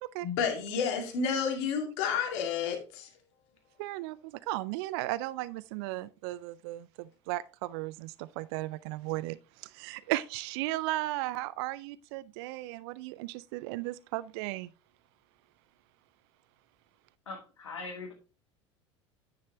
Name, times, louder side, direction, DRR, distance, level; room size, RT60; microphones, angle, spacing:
voice 1, 0.2-3.1, left 6 dB, 60° left, 2.1 m, -30 dB
voice 2, 3.8-14.7, right 18 dB, 60° right, 0.4 m, -36 dB
voice 3, 17.3-18.1, left 3 dB, 85° left, 1.5 m, -41 dB
9.6 x 6.6 x 3.0 m
figure-of-eight pair, 75°, 15 cm